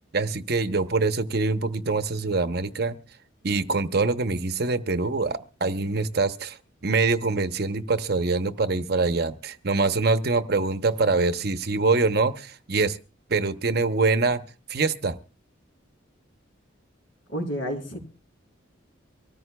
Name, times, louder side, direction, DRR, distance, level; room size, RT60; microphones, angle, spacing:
voice 1, 0.1-2.9 3.4-6.6 6.8-13.0 13.3-14.4 14.7-15.2, right 3 dB, 50° right, 10 dB, 0.8 m, -24 dB
voice 2, 17.3-18.0, equal, 70° left, 4 dB, 3.6 m, -30 dB
24.5 x 14.0 x 2.2 m, 0.34 s
head